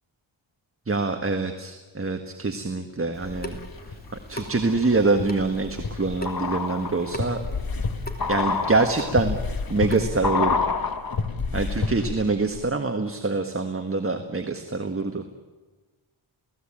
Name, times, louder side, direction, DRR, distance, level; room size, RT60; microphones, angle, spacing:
voice 1, 0.9-3.6 4.3-7.4 8.3-9.4 9.7-10.6 11.5-15.2, right 3 dB, 25° right, 6 dB, 1.6 m, -25 dB
Water tap faucet / Sink (filling or washing) / Drip, 3.1-10.3, left 1 dB, 20° left, 3.2 m, -40 dB
sound 1, 3.2-4.0 4.4-12.3 12.5-12.6, left 4 dB, 45° left, 1.7 m, -28 dB
29.5 x 17.5 x 8.8 m, 1.3 s
wide cardioid pair, 105°, 50 cm